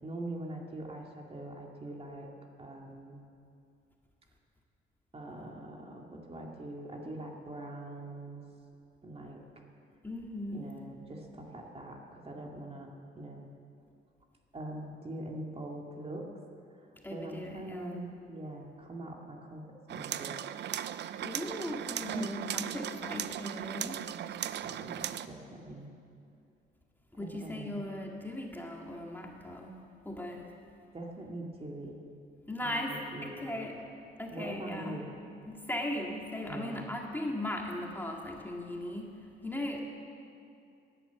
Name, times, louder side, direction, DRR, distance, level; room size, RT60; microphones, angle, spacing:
voice 1, 0.0-2.3 2.6-3.3 5.1-8.4 9.0-9.4 10.5-13.5 14.5-16.3 17.1-19.6 19.9-20.4 22.1-22.8 24.6-25.9 27.2-27.8 30.9-32.0 32.6-32.9 33.1-33.6 34.3-35.1 36.4-36.9, right 1 dB, 30° right, 0 dB, 2.2 m, -43 dB
voice 2, 10.0-10.7 17.0-18.0 21.2-24.0 27.1-29.8 30.1-30.5 32.5-33.8 34.2-35.0 35.5-39.8, left 1 dB, 10° left, 0 dB, 2.0 m, -38 dB
sound 1, 19.9-25.3, right 11 dB, 60° right, 0.6 m, -37 dB
18.0 x 11.0 x 7.1 m, 2.5 s
cardioid pair, 90°, 20 cm